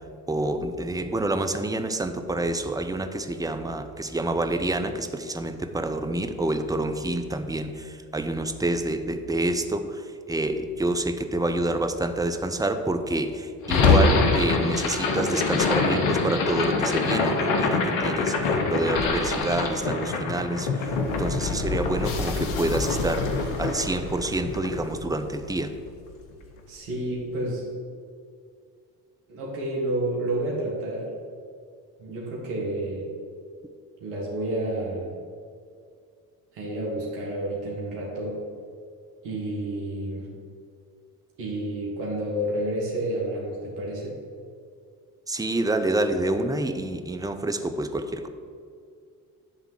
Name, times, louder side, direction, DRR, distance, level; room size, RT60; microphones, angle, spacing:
voice 1, 0.3-10.0 10.3-20.9 21.2-25.7 45.3-48.3, right 2 dB, 10° right, 7 dB, 0.7 m, -27 dB
sound 1, 13.6-25.9, left 4 dB, 75° left, 1.2 m, -25 dB
voice 2, 26.7-27.7 29.3-31.1 32.0-33.1 34.0-35.2 36.5-38.4 39.2-40.3 41.4-44.2, right 1 dB, 80° right, -3 dB, 1.8 m, -30 dB
11.0 x 3.7 x 7.4 m, 2.2 s
hypercardioid pair, 55°, 46 cm